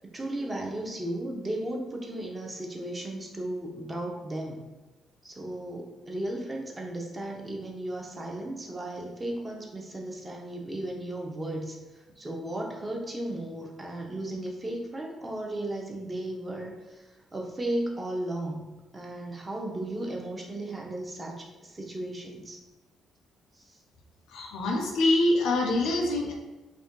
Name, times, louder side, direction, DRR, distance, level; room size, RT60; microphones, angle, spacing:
voice 1, 0.0-4.6 5.2-11.8 12.1-17.0 17.3-18.6 18.9-22.6 23.6-23.8, right 1 dB, 20° right, 0 dB, 0.6 m, -35 dB
voice 2, 24.3-26.3, left 2 dB, 85° left, 1 dB, 0.4 m, -25 dB
2.5 x 2.2 x 3.6 m, 1.2 s
cardioid pair, 90°, 0 cm